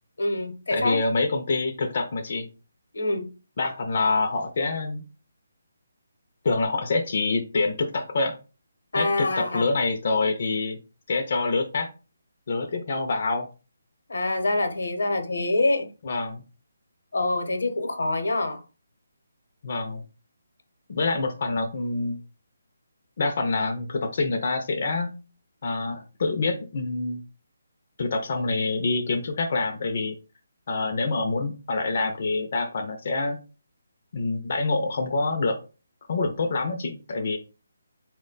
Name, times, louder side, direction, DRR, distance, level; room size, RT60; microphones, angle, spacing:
voice 1, 0.2-1.0 2.9-3.3 8.9-9.6 14.1-15.9 17.1-18.6, left 2 dB, 85° left, 0.8 m, -25 dB
voice 2, 0.7-2.5 3.6-5.0 6.4-8.4 8.9-10.8 11.1-11.9 12.5-13.5 16.0-16.4 19.6-20.0 20.9-22.2 23.2-25.1 25.6-27.2 28.0-30.2 30.7-33.4 34.1-35.6 36.1-37.4, left 3 dB, 50° left, 0.5 m, -26 dB
4.3 x 2.2 x 3.8 m
hypercardioid pair, 165°, 0 cm